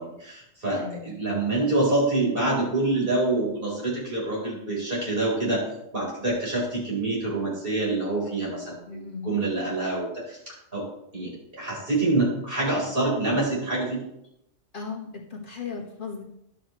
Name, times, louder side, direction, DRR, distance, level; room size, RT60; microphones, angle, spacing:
voice 1, 0.0-5.6 5.9-10.9 11.1-14.0, right 2 dB, 40° right, -5 dB, 4.2 m, -26 dB
voice 2, 0.8-1.1 8.9-9.3 14.7-16.2, left 5 dB, 40° left, -1 dB, 1.6 m, -36 dB
11.0 x 8.0 x 3.1 m, 0.80 s
omnidirectional pair, 1.4 m